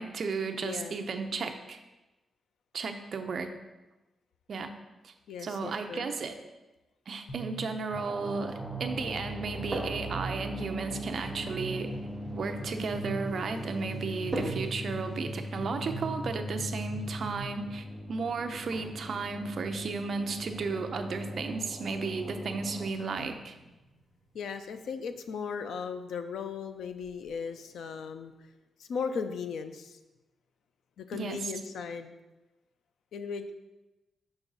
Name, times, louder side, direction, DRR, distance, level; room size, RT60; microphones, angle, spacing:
voice 1, 0.0-1.8 2.7-3.5 4.5-4.7 5.0-5.1 5.4-6.4 7.1-11.9 12.3-23.6 31.1-31.5, right 4 dB, 45° right, 6 dB, 0.5 m, -34 dB
voice 2, 0.6-0.9 5.3-6.1 24.3-28.3 28.8-30.0 31.0-32.1 33.1-33.5, left 5 dB, 85° left, 9 dB, 0.5 m, -37 dB
sound 1, 7.3-17.4, right 3 dB, 35° left, 1.0 m, -41 dB
sound 2, 7.9-22.9, left 1 dB, 5° left, 0.4 m, -41 dB
sound 3, 9.3-27.3, right 1 dB, 15° right, 1.3 m, -46 dB
6.1 x 5.3 x 3.9 m, 1.1 s
wide cardioid pair, 180°, 0 cm